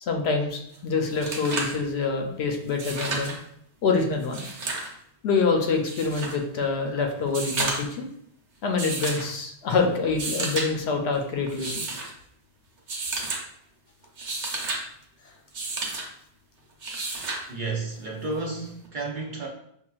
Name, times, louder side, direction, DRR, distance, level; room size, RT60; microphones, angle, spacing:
voice 1, 0.0-3.3 3.8-4.5 5.2-8.1 8.6-11.8, left 4 dB, 70° left, 3 dB, 0.8 m, -26 dB
sound 1, 0.7-0.8 1.1-1.8 2.7-3.4 4.2-4.9 5.9-6.4 7.3-8.0 8.8-9.3 10.1-10.7 11.5-12.1 12.9-13.4 14.0-14.8 15.5-16.1 16.8-17.4 18.8-18.9, right 3 dB, 90° right, 1.1 m, -31 dB
voice 2, 17.5-19.5, right 3 dB, 50° right, -1 dB, 0.7 m, -32 dB
5.5 x 2.4 x 2.3 m, 0.71 s
omnidirectional pair, 1.2 m